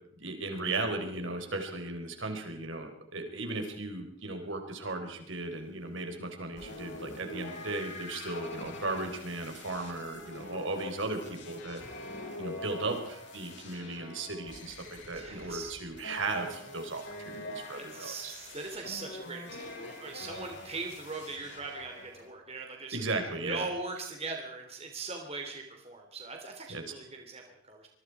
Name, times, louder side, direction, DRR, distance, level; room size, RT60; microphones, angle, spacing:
voice 1, 0.2-11.8 12.4-18.3 22.9-23.7 26.7-26.8, right 2 dB, 65° right, 5 dB, 4.1 m, -36 dB
sound 1, 6.6-22.3, left 2 dB, 55° left, 6.4 m, -45 dB
voice 2, 15.1-15.7 17.7-23.0 23.4-27.9, right 3 dB, 30° right, 2 dB, 2.9 m, -40 dB
25.5 x 22.5 x 4.8 m, 0.73 s
head